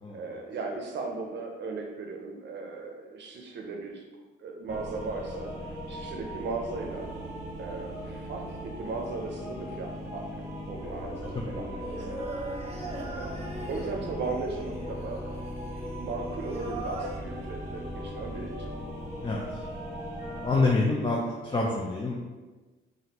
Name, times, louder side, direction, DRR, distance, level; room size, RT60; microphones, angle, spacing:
voice 1, 0.1-4.1 4.4-5.6 5.9-7.1 7.6-12.3 12.7-15.3 16.0-18.8, right 3 dB, 65° right, 2 dB, 0.6 m, -37 dB
sound 1, 4.7-20.7, equal, 15° right, 1.3 m, -38 dB
voice 2, 11.3-11.8 19.2-19.6 20.4-22.2, left 3 dB, 25° left, -2 dB, 0.5 m, -27 dB
Singing, 11.8-17.2, right 2 dB, 30° right, 0.9 m, -40 dB
4.9 x 2.6 x 2.9 m, 1.3 s
cardioid pair, 90°, 20 cm